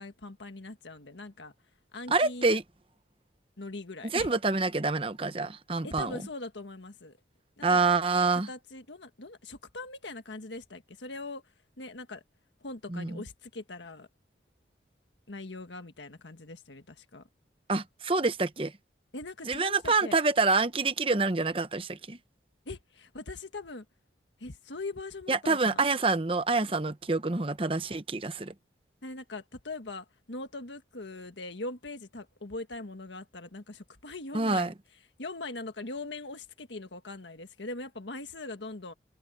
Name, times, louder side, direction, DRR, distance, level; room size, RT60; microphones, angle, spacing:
voice 1, 0.0-1.5 1.9-2.5 3.6-4.3 5.8-7.2 7.6-7.8 8.5-11.4 11.8-12.2 12.6-14.1 15.3-17.3 19.1-20.2 22.7-23.9 24.4-25.8 29.0-34.7 35.2-38.9, left 2 dB, 85° left, 1.6 m, -41 dB
voice 2, 2.1-2.6 4.1-6.2 7.6-8.5 12.9-13.2 17.7-18.7 19.5-22.2 25.3-28.5 34.3-34.7, right 3 dB, 30° right, 0.9 m, -27 dB
head